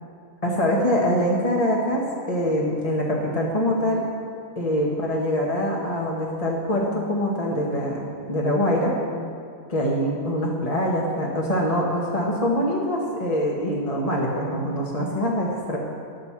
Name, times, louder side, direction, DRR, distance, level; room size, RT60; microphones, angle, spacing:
voice 1, 0.4-2.0 2.3-4.0 4.6-8.9 9.7-15.8, equal, 25° left, -3 dB, 1.0 m, -24 dB
11.0 x 6.4 x 7.2 m, 2.3 s
omnidirectional pair, 1.7 m